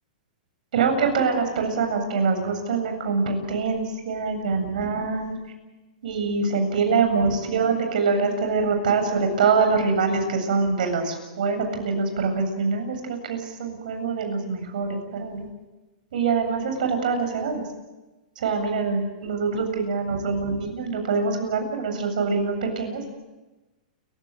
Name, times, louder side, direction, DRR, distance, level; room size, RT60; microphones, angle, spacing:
voice 1, 0.7-5.3 6.0-15.5 16.1-17.6 18.4-23.1, right 4 dB, 75° right, 5 dB, 7.9 m, -24 dB
29.5 x 16.5 x 9.3 m, 1.1 s
hypercardioid pair, 140°, 4 cm